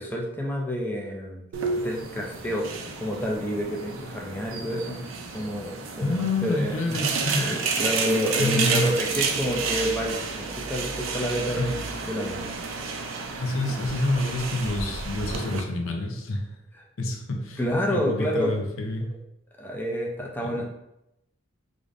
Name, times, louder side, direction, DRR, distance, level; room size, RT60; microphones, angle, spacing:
voice 1, 0.0-1.4 1.8-2.7 3.0-5.0 5.3-12.4 17.6-18.6 19.6-20.6, equal, 10° left, -1 dB, 0.5 m, -29 dB
sound 1, 1.5-15.6, right 4 dB, 75° right, 0.5 m, -31 dB
voice 2, 6.0-7.5 8.4-8.9 11.6-11.7 13.4-16.6 17.0-17.6 17.9-19.1 20.4-20.6, left 2 dB, 85° left, 2 dB, 0.7 m, -28 dB
4.9 x 2.6 x 2.5 m, 0.87 s
head